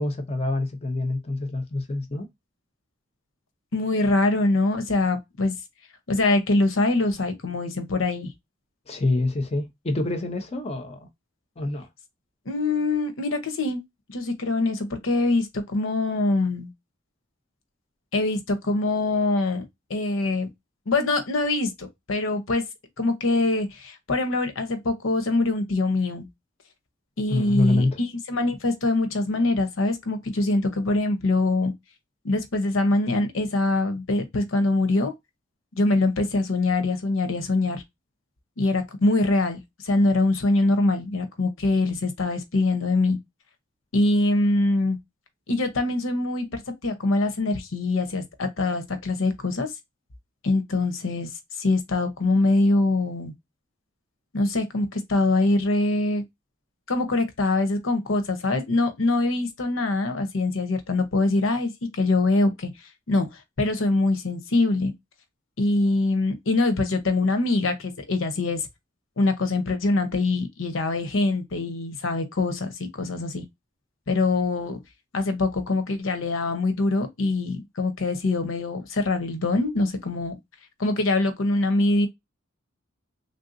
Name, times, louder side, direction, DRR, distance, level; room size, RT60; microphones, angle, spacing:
voice 1, 0.0-2.3 8.9-11.0 11.6-11.9 27.3-28.0, left 2 dB, 30° left, 0.6 m, -26 dB
voice 2, 3.7-5.5 6.1-8.3 12.5-13.8 14.1-16.7 18.1-19.6 19.9-20.5 20.9-22.7 23.0-26.3 27.2-31.7 32.2-35.1 35.8-37.8 38.6-39.6 39.8-43.2 43.9-45.0 45.5-49.7 50.4-51.3 51.6-53.3 54.3-56.2 56.9-62.7 63.1-64.9 65.6-68.6 69.2-73.4 74.1-74.8 75.1-80.3 80.8-82.1, left 2 dB, 85° left, 0.8 m, -24 dB
3.4 x 2.7 x 2.5 m
head